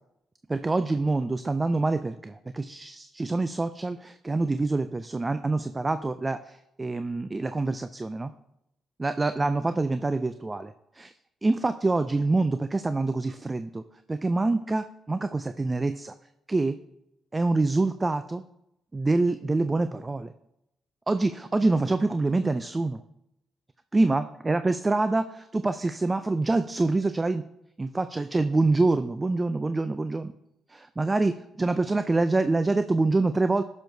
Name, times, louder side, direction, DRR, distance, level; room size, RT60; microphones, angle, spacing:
voice 1, 0.5-8.3 9.0-11.1 11.4-13.8 14.1-16.1 16.5-16.8 17.3-18.4 18.9-20.3 21.1-23.0 23.9-27.4 27.8-30.3 30.7-33.6, right 3 dB, 20° right, 10 dB, 0.3 m, -26 dB
10.5 x 6.3 x 2.7 m, 0.82 s
cardioid pair, 90°, 0 cm